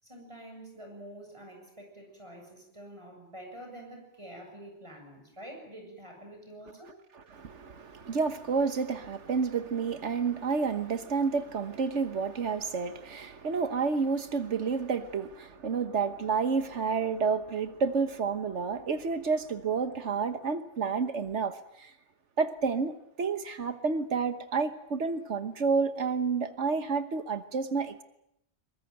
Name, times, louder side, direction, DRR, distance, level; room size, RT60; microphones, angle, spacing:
voice 1, 0.0-6.9, right 1 dB, 25° right, 7.2 m, -47 dB
voice 2, 7.3-21.5 21.8-21.9 22.4-22.9 23.2-28.0, right 5 dB, 80° right, 1.6 m, -30 dB
23.0 x 21.5 x 9.1 m
omnidirectional pair, 1.2 m